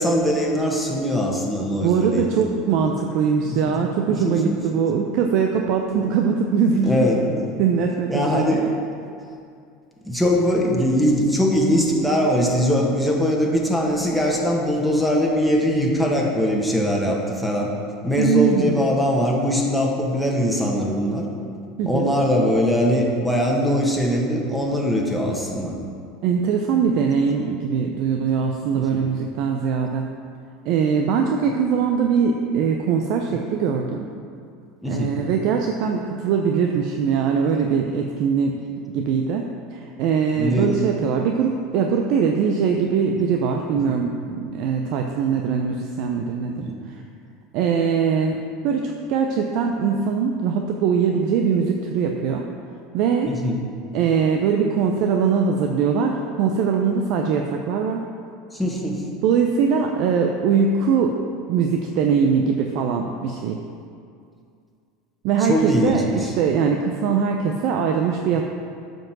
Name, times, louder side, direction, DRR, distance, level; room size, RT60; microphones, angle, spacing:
voice 1, 0.0-2.5 3.5-3.8 4.2-4.6 6.8-7.5 8.1-8.7 10.0-17.7 18.0-21.3 21.9-25.7 28.8-29.0 34.8-35.2 40.4-40.8 43.9-44.0 46.6-46.8 53.3-53.6 58.5-59.0 65.4-66.3, equal, ahead, -2 dB, 1.5 m, -21 dB
voice 2, 1.8-7.1 7.6-8.7 18.2-19.0 21.8-22.1 26.2-30.1 30.6-34.1 34.8-39.4 39.7-47.0 47.5-48.4 48.6-52.4 52.9-53.3 53.9-58.0 59.2-61.2 61.5-63.6 65.2-68.4, right 6 dB, 60° right, 2 dB, 0.6 m, -22 dB
7.3 x 5.4 x 6.0 m, 2.4 s
hypercardioid pair, 90°, 0 cm